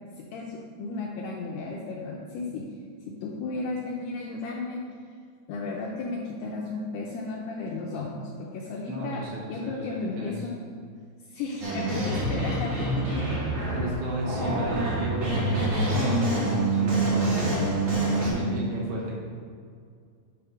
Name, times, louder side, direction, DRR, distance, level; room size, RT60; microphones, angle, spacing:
voice 1, 0.2-2.6 3.2-4.8 5.5-9.2 9.5-10.6 11.3-13.1 13.8-13.9 16.5-16.6, left 3 dB, 85° left, -2 dB, 2.3 m, -34 dB
voice 2, 8.9-9.9 10.2-10.4 13.7-17.5 18.2-19.1, right 1 dB, 70° right, -4 dB, 2.8 m, -33 dB
sound 1, 11.6-18.3, right 2 dB, 55° right, 2.0 m, -26 dB
9.7 x 3.4 x 5.8 m, 2.2 s
omnidirectional pair, 5.3 m